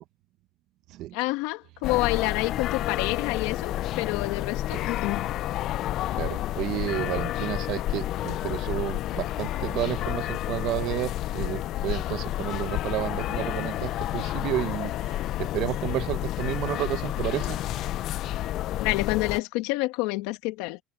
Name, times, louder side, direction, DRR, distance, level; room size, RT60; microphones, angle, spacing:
voice 1, 1.1-5.3 18.8-20.8, left 21 dB, 85° left, 1.9 m, -28 dB
sound 1, 1.8-19.4, left 13 dB, 65° left, 0.6 m, -30 dB
voice 2, 6.2-17.6, right 15 dB, 70° right, 1.1 m, -31 dB
supercardioid pair, 100°, 0 cm